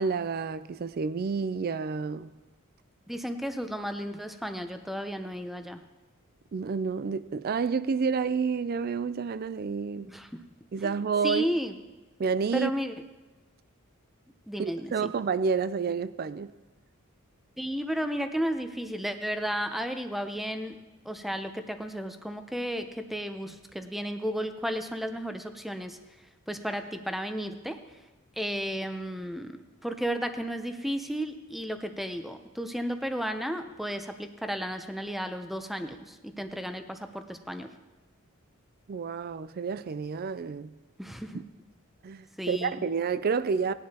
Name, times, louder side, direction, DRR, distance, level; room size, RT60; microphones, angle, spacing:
voice 1, 0.0-2.3 6.5-10.1 10.7-11.5 12.2-12.7 14.6-16.5 38.9-40.7 41.3-41.4 42.0-43.7, right 5 dB, 45° right, 0.4 m, -29 dB
voice 2, 3.1-5.8 10.1-10.3 10.8-11.8 12.5-12.9 14.5-15.1 17.6-20.8 21.1-26.0 26.5-27.8 28.4-37.7 41.0-41.4 42.4-42.8, equal, ahead, 0.6 m, -33 dB
19.0 x 10.5 x 2.9 m
head